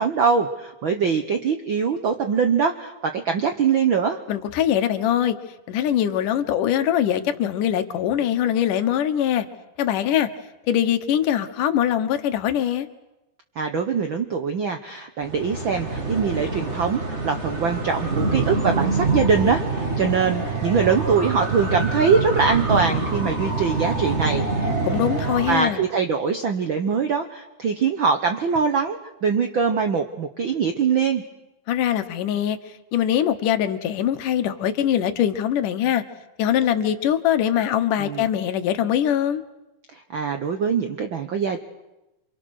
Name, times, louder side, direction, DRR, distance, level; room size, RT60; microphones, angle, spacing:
voice 1, 0.0-4.2 13.6-25.1 25.5-31.2 38.0-38.2 39.9-41.6, right 6 dB, 85° right, 6 dB, 1.0 m, -23 dB
voice 2, 4.3-5.4 5.7-9.5 9.8-10.3 10.7-12.9 24.8-25.8 31.7-32.6 32.9-36.0 36.4-39.4, left 10 dB, 75° left, 9 dB, 2.7 m, -22 dB
sound 1, 15.2-25.6, right 3 dB, 25° right, 2.0 m, -25 dB
27.5 x 25.5 x 6.5 m, 0.98 s
omnidirectional pair, 3.8 m